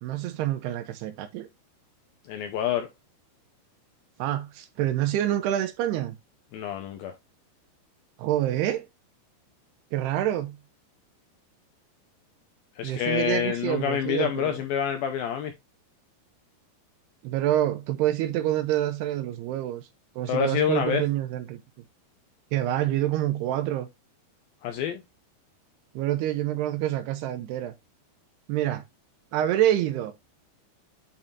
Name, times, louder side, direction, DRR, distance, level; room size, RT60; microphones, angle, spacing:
voice 1, 0.0-1.5 4.2-6.2 8.2-8.9 9.9-10.6 12.8-14.6 17.2-19.9 20.2-21.6 22.5-23.9 26.0-27.7 28.5-28.8 29.3-30.1, right 12 dB, 80° right, 2.5 m, -27 dB
voice 2, 2.3-2.9 6.5-7.1 12.8-15.5 20.3-21.0 24.6-25.0, left 9 dB, 80° left, 2.2 m, -27 dB
8.7 x 5.5 x 2.5 m
omnidirectional pair, 5.1 m